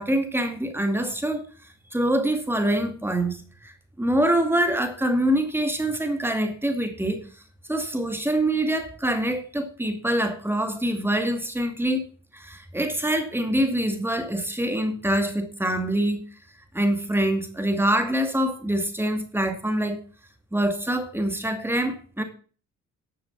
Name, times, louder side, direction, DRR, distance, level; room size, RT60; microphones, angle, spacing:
voice 1, 0.0-1.4 1.9-3.7 4.0-7.2 7.7-12.1 12.3-16.2 16.7-20.0 20.5-22.2, right 1 dB, 5° right, 2.3 m, -25 dB
11.0 x 6.7 x 6.0 m
cardioid pair, 90°, 30 cm